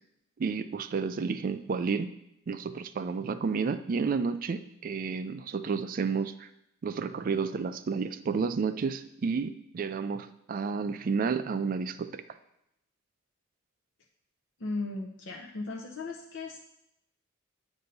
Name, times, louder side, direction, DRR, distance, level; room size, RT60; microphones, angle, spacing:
voice 1, 0.4-2.1 2.5-6.5 6.8-12.2, right 5 dB, 45° right, 10 dB, 0.3 m, -31 dB
voice 2, 14.6-16.6, left 3 dB, 65° left, -1 dB, 0.6 m, -36 dB
7.8 x 2.7 x 5.3 m, 0.81 s
head